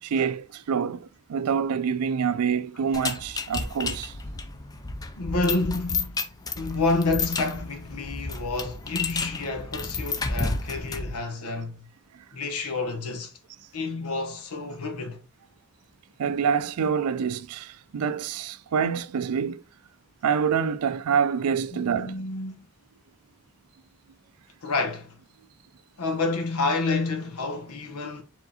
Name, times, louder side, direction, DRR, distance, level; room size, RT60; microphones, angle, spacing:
voice 1, 0.0-4.1 16.2-19.6 20.2-22.2, right 6 dB, 85° right, 0.4 m, -26 dB
sound 1, 2.9-11.2, left 4 dB, 15° left, 0.3 m, -31 dB
voice 2, 5.2-6.3 6.5-11.9 12.3-13.3 13.7-15.2 21.7-22.7 24.6-25.2 26.0-28.2, left 3 dB, 80° left, 1.0 m, -29 dB
4.7 x 3.7 x 2.8 m
head